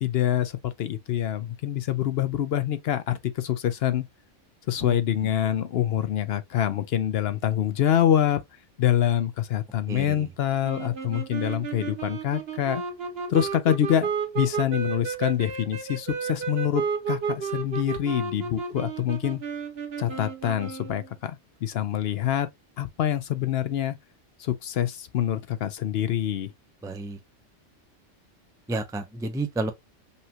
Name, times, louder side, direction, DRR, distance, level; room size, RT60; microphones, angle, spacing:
voice 1, 0.0-4.0 4.7-8.4 8.8-12.8 13.3-19.4 20.0-22.5 22.8-24.0 24.4-26.5, left 10 dB, 65° left, 0.7 m, -26 dB
sound 1, 10.6-21.1, right 6 dB, 55° right, 1.2 m, -32 dB
voice 2, 26.8-27.2 28.7-29.7, right 2 dB, 5° right, 0.4 m, -30 dB
5.5 x 2.3 x 2.8 m
omnidirectional pair, 1.2 m